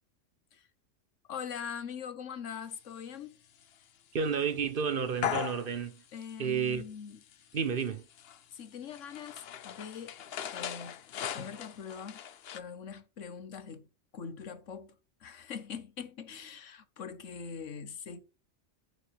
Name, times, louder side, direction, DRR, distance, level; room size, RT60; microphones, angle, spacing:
voice 1, 1.3-3.4 6.1-7.2 8.5-10.2 10.5-11.0 11.3-12.2 12.5-13.8 14.1-14.9 15.2-18.2, left 7 dB, 75° left, 1.4 m, -42 dB
sound 1, 3.6-3.7 4.4-4.5 5.1-6.0 6.3-6.7 7.1-12.6, left 9 dB, 60° left, 0.9 m, -39 dB
voice 2, 4.1-6.0 6.4-6.8 7.5-8.0, right 6 dB, 45° right, 1.2 m, -31 dB
6.7 x 6.7 x 6.3 m
omnidirectional pair, 1.3 m